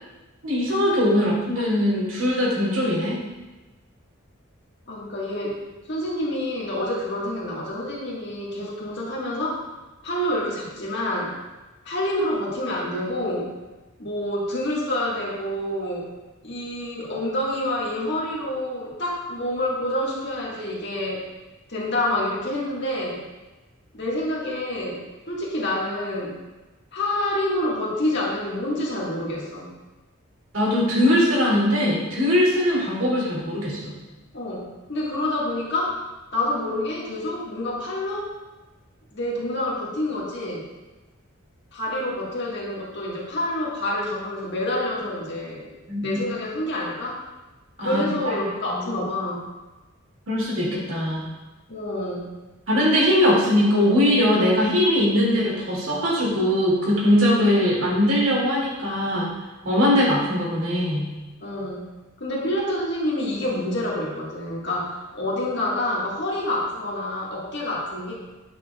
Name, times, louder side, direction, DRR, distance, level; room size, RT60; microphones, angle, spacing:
voice 1, 0.4-3.2 30.5-33.9 45.9-46.2 47.8-48.4 48.7-49.0 50.3-51.3 52.7-59.3 59.6-61.0, left 1 dB, 75° right, -4 dB, 2.3 m, -21 dB
voice 2, 1.1-1.6 4.9-5.6 5.9-9.6 10.0-11.3 11.8-13.5 14.0-16.1 16.4-21.3 21.7-23.2 23.9-26.4 26.9-29.7 34.3-36.0 36.3-38.3 39.1-40.6 41.7-45.7 46.0-47.2 47.8-49.5 51.7-52.3 61.4-61.8 62.2-68.1, left 1 dB, 55° left, -4 dB, 1.6 m, -27 dB
8.5 x 5.9 x 2.3 m, 1.1 s
head